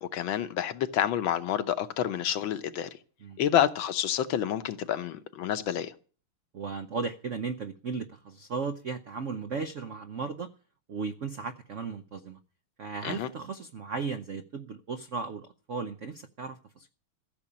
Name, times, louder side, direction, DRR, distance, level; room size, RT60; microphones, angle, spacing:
voice 1, 0.0-2.9 3.4-5.9 13.0-13.3, left 10 dB, 70° left, 1.5 m, -28 dB
voice 2, 6.5-10.5 10.9-12.4 12.8-16.9, right 5 dB, 70° right, 0.7 m, -36 dB
15.0 x 6.8 x 8.6 m
omnidirectional pair, 2.3 m